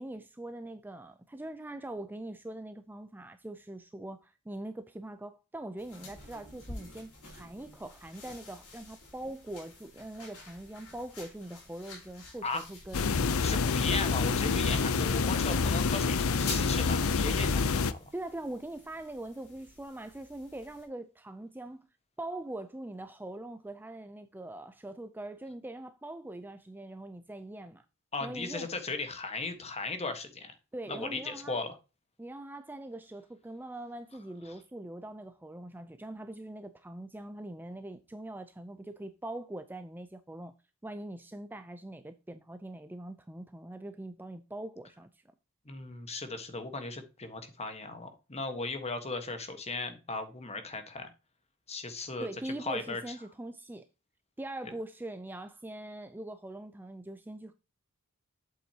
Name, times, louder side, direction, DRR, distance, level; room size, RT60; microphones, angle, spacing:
voice 1, 0.0-13.2 18.1-21.9 22.2-27.9 28.2-28.7 30.7-31.6 32.2-40.5 40.8-45.2 52.2-53.9 54.4-57.5, right 1 dB, 10° right, 0.4 m, -42 dB
sound 1, 5.8-20.8, left 3 dB, 85° left, 4.3 m, -49 dB
sound 2, 12.9-17.9, left 4 dB, 70° left, 0.6 m, -27 dB
voice 2, 13.4-18.0 28.1-30.5 30.9-31.8 34.4-34.5 45.6-51.1 51.7-53.0, left 3 dB, 30° left, 1.4 m, -37 dB
8.2 x 7.4 x 2.9 m
head